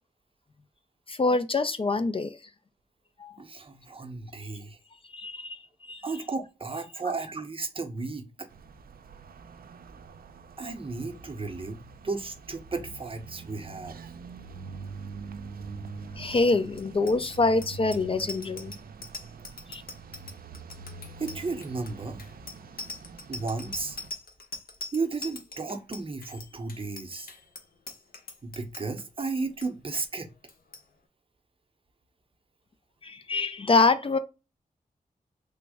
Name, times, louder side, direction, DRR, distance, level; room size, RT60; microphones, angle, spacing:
voice 1, 1.1-2.4 3.2-3.3 5.1-5.6 5.9-6.0 16.2-18.7 19.7-19.8 33.0-34.2, left 3 dB, 35° left, 0.4 m, -25 dB
voice 2, 3.4-4.8 6.0-8.5 10.6-14.0 21.2-22.2 23.3-24.0 24.9-27.3 28.4-30.3, right 3 dB, 35° right, 0.7 m, -34 dB
sound 1, 8.5-24.1, right 4 dB, 75° right, 0.4 m, -44 dB
Bicycle bell, 16.7-29.0 29.4-29.7 29.9-30.2 30.5-30.8, left 3 dB, 75° left, 0.8 m, -42 dB
3.4 x 2.0 x 3.4 m
cardioid pair, 65°, 15 cm